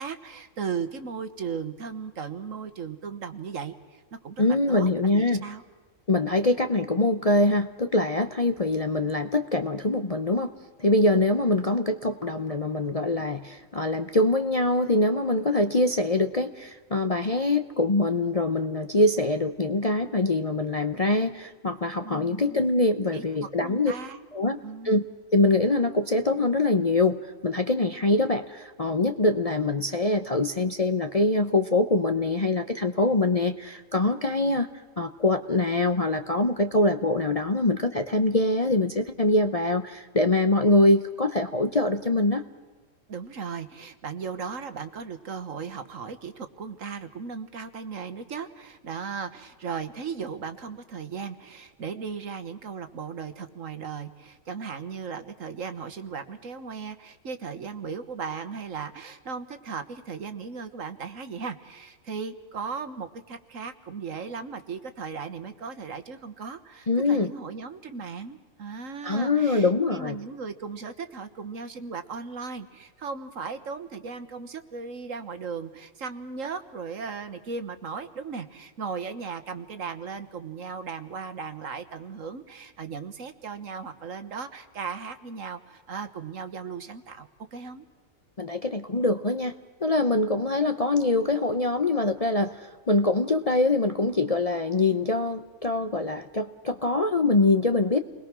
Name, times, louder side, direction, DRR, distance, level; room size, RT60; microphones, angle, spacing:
voice 1, 0.0-5.6 22.0-22.6 23.1-24.2 24.6-25.1 43.1-87.8, right 5 dB, 60° right, 10 dB, 1.6 m, -37 dB
voice 2, 4.4-5.4 6.1-10.5 10.8-23.9 24.3-24.6 24.8-25.0 25.3-27.2 27.4-34.7 35.0-42.4 66.9-67.3 69.0-70.2 88.4-89.5 89.8-98.0, left 2 dB, 30° left, 7 dB, 0.7 m, -24 dB
29.5 x 21.0 x 6.2 m, 1.4 s
omnidirectional pair, 1.6 m